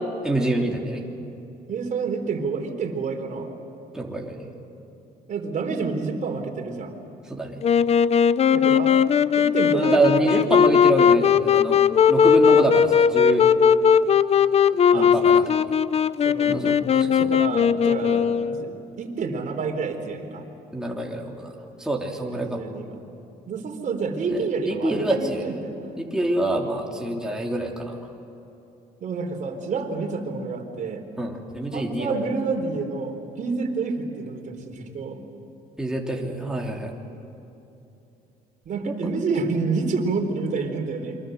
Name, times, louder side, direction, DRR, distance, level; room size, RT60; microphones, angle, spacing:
voice 1, 0.2-1.0 3.9-4.5 7.3-7.6 9.7-13.5 14.9-15.4 16.5-17.3 20.7-22.6 24.3-24.4 24.6-25.4 26.0-28.0 31.2-32.1 35.8-36.9, right 1 dB, 5° right, -1 dB, 3.3 m, -26 dB
voice 2, 1.7-3.5 5.3-6.9 8.5-9.0 9.4-10.6 14.9-15.5 16.2-16.8 17.2-20.4 22.3-23.1 23.5-25.7 29.0-31.1 31.7-35.2 38.6-41.2, right 4 dB, 50° right, 3 dB, 4.1 m, -29 dB
Wind instrument woodwind instrument, 7.6-18.7, left 7 dB, 40° left, 0.6 m, -18 dB
29.0 x 24.0 x 8.0 m, 2.8 s
cardioid pair, 110°, 17 cm